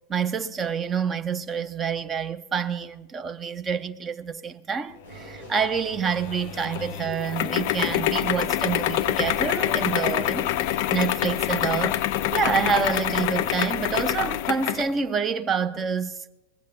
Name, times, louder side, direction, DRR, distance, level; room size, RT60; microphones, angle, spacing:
voice 1, 0.1-12.0 12.3-16.2, right 6 dB, 20° right, 0.6 m, -27 dB
sound 1, 5.0-10.1, equal, 90° right, 5.5 m, -41 dB
sound 2, 6.1-14.9, left 13 dB, 45° left, 0.4 m, -26 dB
20.0 x 7.4 x 5.7 m
figure-of-eight pair, 90°, 0 cm